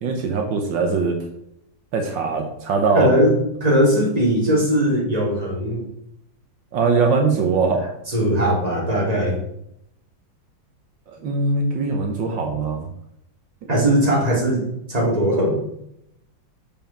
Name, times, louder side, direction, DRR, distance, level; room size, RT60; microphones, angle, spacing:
voice 1, 0.0-1.2 1.9-3.1 6.7-7.8 11.1-12.9, right 4 dB, 75° right, 3 dB, 1.8 m, -21 dB
voice 2, 2.9-3.3 3.6-5.9 8.1-9.4 13.7-15.6, equal, 20° right, -3 dB, 2.6 m, -19 dB
7.2 x 5.6 x 5.8 m, 0.78 s
omnidirectional pair, 2.0 m